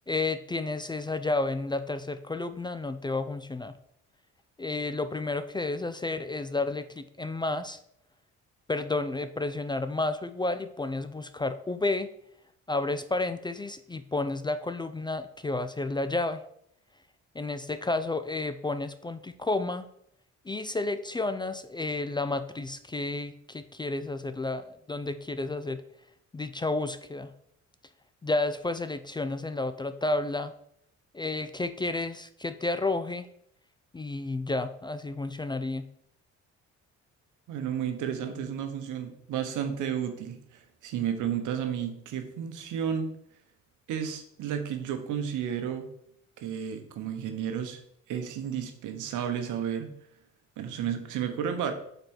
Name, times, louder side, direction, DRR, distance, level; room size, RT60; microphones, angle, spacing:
voice 1, 0.1-3.7 4.6-7.8 8.7-12.1 12.7-16.4 17.3-19.9 20.5-25.8 26.3-27.3 28.2-30.5 31.1-33.3 33.9-35.8, left 2 dB, 15° left, 10 dB, 0.3 m, -31 dB
voice 2, 37.5-43.2 43.9-45.9 46.4-47.8 48.1-49.9 50.6-51.7, right 8 dB, 85° right, 7 dB, 1.0 m, -32 dB
5.3 x 4.4 x 4.5 m, 0.71 s
cardioid pair, 90°, 30 cm